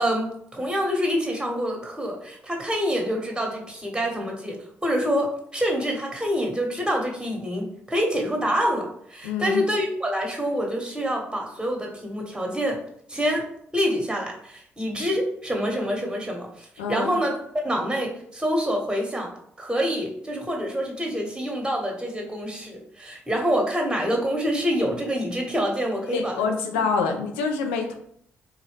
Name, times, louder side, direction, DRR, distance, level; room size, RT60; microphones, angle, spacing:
voice 1, 0.0-12.8 13.1-13.5 13.7-17.4 17.6-19.3 19.6-26.3, equal, 15° right, 0 dB, 1.3 m, -26 dB
voice 2, 9.2-9.6 16.8-17.2 26.1-27.9, left 5 dB, 85° left, 4 dB, 0.5 m, -26 dB
4.0 x 2.7 x 3.2 m, 0.68 s
hypercardioid pair, 45°, 6 cm